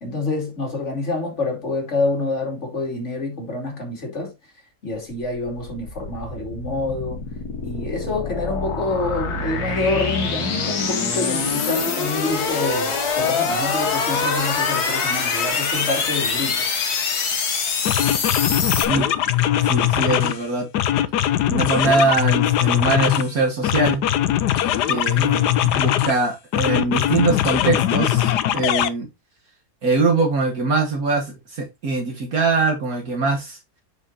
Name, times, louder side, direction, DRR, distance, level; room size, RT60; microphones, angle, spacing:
voice 1, 0.0-4.3 4.8-7.2 7.6-16.7, left 2 dB, 45° left, 2.9 m, -27 dB
sound 1, 5.2-18.8, left 5 dB, 70° left, 2.0 m, -24 dB
sound 2, 17.3-17.5 17.8-20.4 20.7-23.3 23.6-26.2 26.5-28.9, left 12 dB, 85° left, 1.3 m, -20 dB
voice 2, 19.6-20.7 21.5-24.0 24.9-29.1 29.8-33.6, right 3 dB, 60° right, 2.0 m, -22 dB
7.6 x 6.3 x 2.8 m
omnidirectional pair, 1.7 m